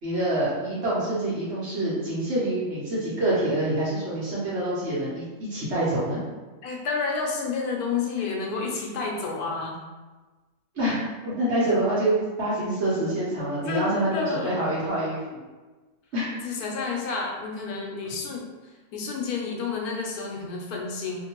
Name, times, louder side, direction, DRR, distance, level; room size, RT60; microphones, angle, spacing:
voice 1, 0.0-6.2 10.7-11.0 11.2-15.4 16.1-16.3, right 1 dB, 50° right, -8 dB, 1.2 m, -26 dB
voice 2, 6.6-9.8 13.7-14.6 16.4-18.4 18.9-21.3, left 4 dB, 80° left, -1 dB, 1.1 m, -30 dB
2.9 x 2.5 x 2.9 m, 1.2 s
omnidirectional pair, 1.6 m